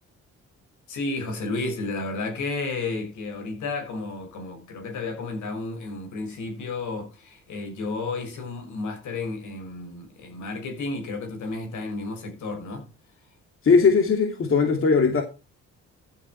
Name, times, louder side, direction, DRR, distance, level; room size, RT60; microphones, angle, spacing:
voice 1, 0.9-12.9, left 3 dB, 75° left, 6.1 m, -32 dB
voice 2, 13.6-15.2, left 5 dB, 45° left, 2.4 m, -19 dB
14.5 x 7.9 x 4.5 m
cardioid pair, 90°, 30 cm